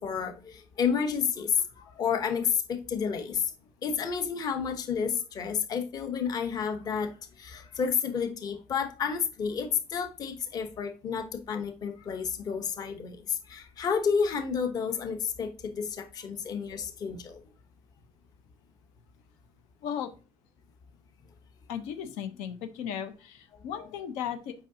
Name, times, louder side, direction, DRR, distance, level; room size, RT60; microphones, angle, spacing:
voice 1, 0.0-3.5 3.8-17.4, left 6 dB, 35° left, 6 dB, 1.0 m, -30 dB
voice 2, 21.7-24.5, left 9 dB, 80° left, 8 dB, 1.0 m, -36 dB
8.1 x 5.3 x 2.8 m, 0.35 s
cardioid pair, 150°, 12 cm